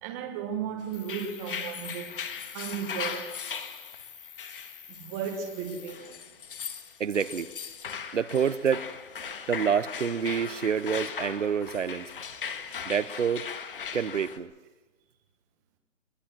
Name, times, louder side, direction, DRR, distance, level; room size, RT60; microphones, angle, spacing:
voice 1, 0.0-2.1 2.5-3.3 5.0-6.2 9.2-9.4, right 7 dB, 15° right, 1.3 m, -35 dB
sound 1, 0.9-14.4, left 7 dB, 45° left, 1.7 m, -38 dB
Cricket, 0.9-5.9, left 7 dB, 10° left, 1.1 m, -49 dB
voice 2, 7.0-7.5 8.1-8.8 9.5-12.1 12.9-13.4 13.9-14.5, right 7 dB, 70° right, 1.0 m, -27 dB
23.0 x 19.0 x 7.5 m
hypercardioid pair, 165°, 39 cm